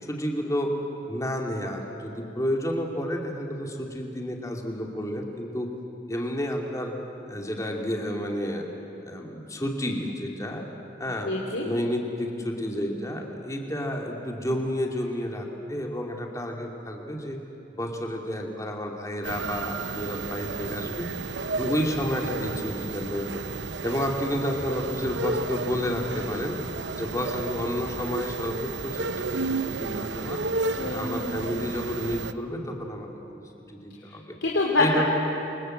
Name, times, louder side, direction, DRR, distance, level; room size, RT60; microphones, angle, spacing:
voice 1, 0.0-0.7 1.1-5.7 6.1-6.9 7.3-8.7 9.0-10.6 11.0-11.3 11.6-17.4 17.7-21.1 21.6-23.4 23.8-26.6 27.0-30.4 30.8-33.4 33.7-34.4 34.8-35.1, equal, 15° left, 1 dB, 2.7 m, -30 dB
voice 2, 11.2-11.7 30.8-31.3 34.1-34.2 34.4-34.8, left 2 dB, 85° left, -3 dB, 3.5 m, -26 dB
sound 1, 19.2-32.3, right 3 dB, 70° right, 0.9 m, -32 dB
29.5 x 24.5 x 8.0 m, 2.8 s
head